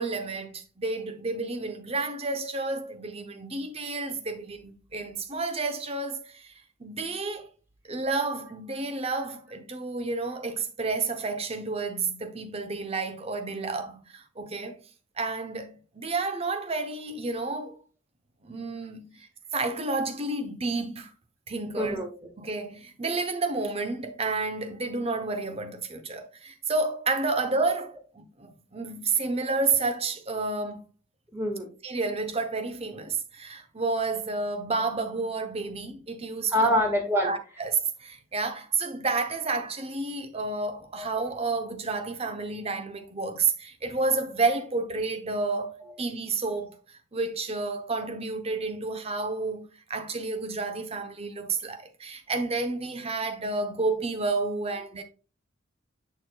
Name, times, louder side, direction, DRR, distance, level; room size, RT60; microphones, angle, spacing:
voice 1, 0.0-6.5 6.8-7.5 7.8-14.8 15.2-17.7 18.4-21.1 21.5-22.0 22.4-30.9 31.8-36.8 37.2-46.8 47.1-49.6 49.9-55.0, right 3 dB, 30° right, 0.8 m, -30 dB
voice 2, 21.8-22.1 31.3-31.7 36.5-37.3 41.0-41.1, equal, 15° right, 1.8 m, -25 dB
6.8 x 6.1 x 2.3 m
head